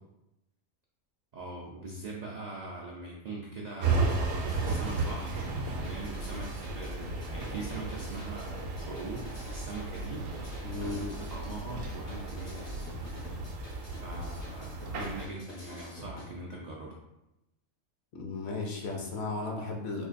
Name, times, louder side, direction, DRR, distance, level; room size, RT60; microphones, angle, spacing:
voice 1, 1.3-4.1 4.7-10.3 10.8-12.9 14.0-17.0, right 2 dB, 80° right, -3 dB, 0.3 m, -42 dB
sound 1, 3.8-15.3, right 3 dB, 65° right, 0.7 m, -34 dB
sound 2, 3.9-16.3, left 1 dB, 80° left, 1.8 m, -46 dB
voice 2, 10.6-11.0 18.1-20.1, left 3 dB, 65° left, 1 dB, 0.7 m, -35 dB
4.5 x 2.4 x 2.5 m, 0.91 s
omnidirectional pair, 1.4 m